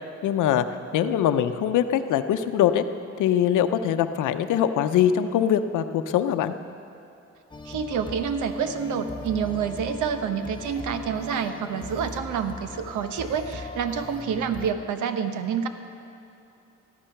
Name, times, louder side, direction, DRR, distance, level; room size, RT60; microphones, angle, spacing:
voice 1, 0.2-0.6 0.9-2.8 3.2-6.5, left 10 dB, 80° left, 9 dB, 0.8 m, -22 dB
sound 1, 7.5-14.7, left 2 dB, 15° left, 0.9 m, -39 dB
voice 2, 7.7-15.7, right 7 dB, 80° right, 8 dB, 1.0 m, -28 dB
14.5 x 13.0 x 5.9 m, 2.7 s
cardioid pair, 90°, 30 cm